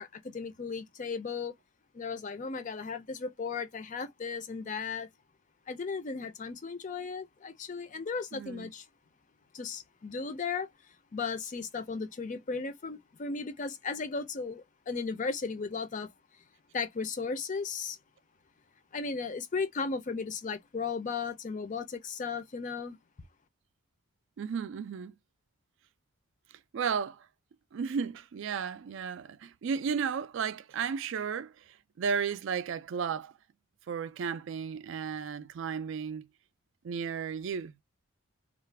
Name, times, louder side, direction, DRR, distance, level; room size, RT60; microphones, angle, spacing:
voice 1, 0.0-1.5 1.9-5.1 5.7-8.9 9.5-10.7 11.1-16.1 16.7-18.0 18.9-23.0, left 5 dB, 35° left, 0.4 m, -35 dB
voice 2, 8.3-8.7 24.4-25.1 26.7-27.3 27.7-33.3 33.9-36.3 36.8-37.7, right 6 dB, 60° right, 0.3 m, -34 dB
2.4 x 2.2 x 3.2 m
head